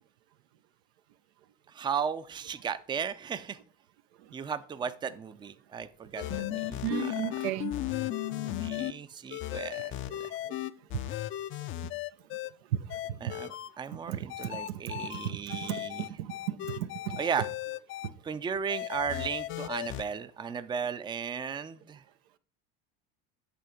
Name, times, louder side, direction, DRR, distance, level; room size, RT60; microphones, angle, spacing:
voice 1, 1.7-3.6 4.3-7.4 8.0-10.4 13.2-16.2 17.1-17.5 18.2-22.0, right 7 dB, 15° right, 0.4 m, -36 dB
sound 1, 6.2-8.9 9.3-12.5 12.9-13.7 14.3-18.1 18.7-20.0, left 14 dB, 40° left, 0.4 m, -36 dB
voice 2, 6.8-7.7 10.5-10.6 10.9-11.0 11.8-11.9 12.7-12.8 13.1-13.3 14.1-17.2 18.0-18.1, right 11 dB, 85° right, 0.6 m, -35 dB
8.4 x 3.4 x 5.1 m
supercardioid pair, 95°, 30 cm